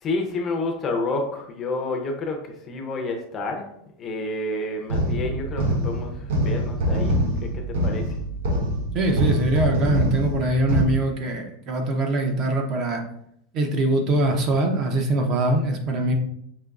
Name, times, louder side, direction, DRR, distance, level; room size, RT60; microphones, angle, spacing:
voice 1, 0.0-3.7 4.0-8.2, left 2 dB, 20° left, 3 dB, 0.5 m, -29 dB
sound 1, 4.9-10.8, equal, 85° right, 0.8 m, -24 dB
voice 2, 8.9-13.0 13.5-16.1, right 2 dB, 30° right, 4 dB, 0.5 m, -23 dB
5.1 x 2.9 x 2.3 m, 0.72 s
supercardioid pair, 175°, 0 cm